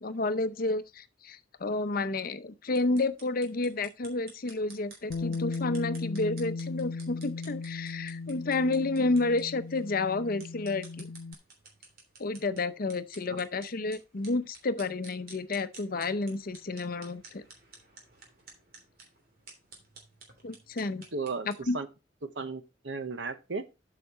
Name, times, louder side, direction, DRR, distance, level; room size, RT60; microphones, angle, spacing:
voice 1, 0.0-11.1 12.2-17.4 20.4-21.0 21.4-21.8, left 3 dB, 50° left, 0.7 m, -30 dB
sound 1, 2.7-21.6, right 3 dB, 55° right, 3.1 m, -54 dB
Bass guitar, 5.1-11.3, left 4 dB, 80° left, 0.4 m, -37 dB
voice 2, 21.1-21.9 22.3-23.6, right 4 dB, 70° right, 1.0 m, -35 dB
8.2 x 5.8 x 4.3 m
head